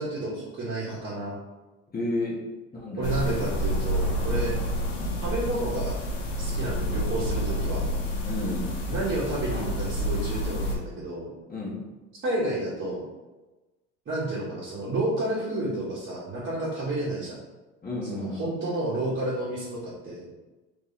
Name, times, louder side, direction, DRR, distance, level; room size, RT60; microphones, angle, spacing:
voice 1, 0.0-1.4 3.0-4.5 5.2-5.9 6.4-7.8 8.9-11.3 12.2-13.0 14.1-17.4 18.0-20.2, right 1 dB, 35° right, -9 dB, 1.3 m, -30 dB
voice 2, 1.9-2.4 2.7-3.1 8.2-8.7 11.5-11.8 17.8-18.4, left 2 dB, 25° left, -5 dB, 1.2 m, -31 dB
sound 1, 3.0-10.8, equal, 85° left, 0.8 m, -29 dB
3.1 x 2.7 x 4.1 m, 1.1 s
hypercardioid pair, 80°, 35 cm